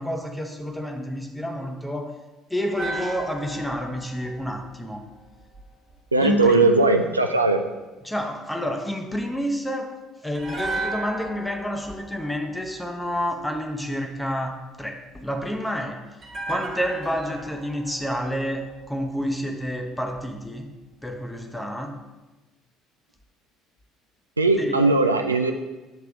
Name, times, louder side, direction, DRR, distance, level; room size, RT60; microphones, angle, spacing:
voice 1, 0.0-2.2 2.5-5.0 6.2-6.7 8.0-16.1 16.5-20.7 21.0-22.0 24.6-24.8, equal, 5° left, 4 dB, 0.8 m, -29 dB
sound 1, 2.8-5.9 10.3-13.6 16.2-19.4 19.7-19.8, right 2 dB, 35° right, 1.4 m, -36 dB
voice 2, 6.1-7.6 24.4-25.5, right 3 dB, 85° right, 5 dB, 0.3 m, -19 dB
7.2 x 3.3 x 4.8 m, 1.1 s
figure-of-eight pair, 55°, 0 cm